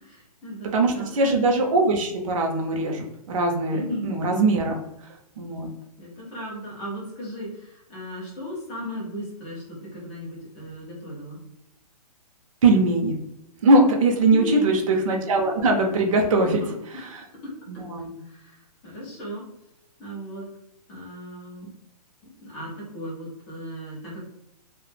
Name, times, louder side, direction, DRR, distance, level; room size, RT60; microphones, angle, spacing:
voice 1, 0.0-1.1 3.7-4.1 5.5-5.7 6.0-11.4 14.3-14.8 16.3-17.2 18.2-19.4 20.0-20.5 20.9-21.7 22.4-24.2, equal, 10° left, -5 dB, 0.3 m, -36 dB
voice 2, 0.7-4.8 5.4-5.7 12.6-13.1 13.6-16.6 17.7-18.1, right 2 dB, 55° right, 2 dB, 0.5 m, -21 dB
2.1 x 2.0 x 3.1 m, 0.83 s
hypercardioid pair, 165°, 21 cm